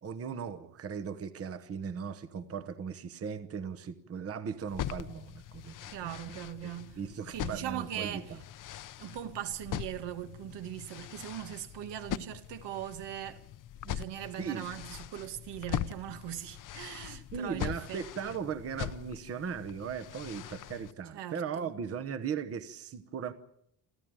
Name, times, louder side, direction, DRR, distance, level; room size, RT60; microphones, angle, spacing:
voice 1, 0.0-6.4 6.6-8.4 14.4-14.7 17.3-23.3, right 7 dB, 35° right, 1.1 m, -38 dB
sound 1, 4.7-20.9, left 11 dB, 50° left, 0.8 m, -41 dB
voice 2, 5.9-7.0 7.3-8.4 9.0-13.5 13.8-18.4 21.1-21.7, right 11 dB, 75° right, 1.9 m, -40 dB
29.0 x 12.5 x 8.9 m
cardioid pair, 170°, 42 cm